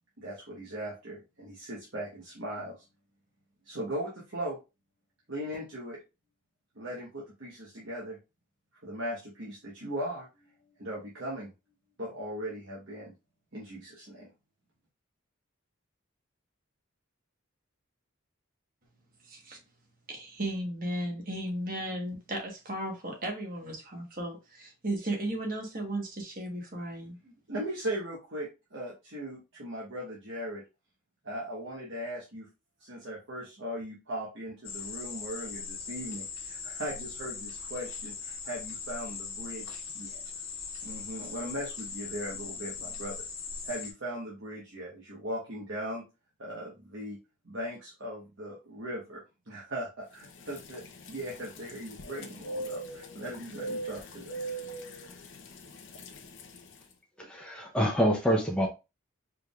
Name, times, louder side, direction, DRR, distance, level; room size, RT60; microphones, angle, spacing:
voice 1, 0.2-2.8 3.6-4.6 5.3-6.0 6.8-8.2 8.8-10.5 10.8-11.5 12.0-13.1 13.5-14.3 27.5-30.6 31.2-32.5 32.8-40.2 40.8-43.2 43.6-46.0 46.4-47.2 47.4-49.2 49.5-54.4, equal, 60° right, 1.1 m, -38 dB
voice 2, 19.3-19.6 20.1-27.3, right 1 dB, 40° right, 1.2 m, -35 dB
sound 1, 34.6-43.9, left 6 dB, 90° left, 1.4 m, -40 dB
sound 2, 50.2-56.8, right 1 dB, 60° left, 0.7 m, -41 dB
voice 3, 57.3-58.7, equal, 5° left, 0.7 m, -26 dB
4.7 x 3.5 x 2.4 m
head